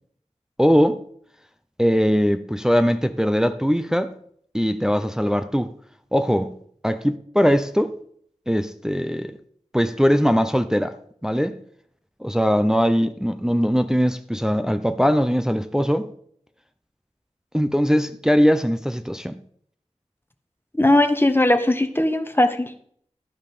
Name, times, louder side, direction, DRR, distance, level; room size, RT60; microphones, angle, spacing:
voice 1, 0.6-1.0 1.8-4.1 4.5-5.7 6.1-6.5 6.8-7.9 8.5-9.4 9.7-10.9 11.2-11.6 12.2-16.1 17.5-19.4, equal, 5° right, 0.5 m, -20 dB
voice 2, 20.8-22.8, left 1 dB, 15° left, 1.0 m, -19 dB
12.0 x 5.1 x 5.4 m
wide cardioid pair, 60°, 12 cm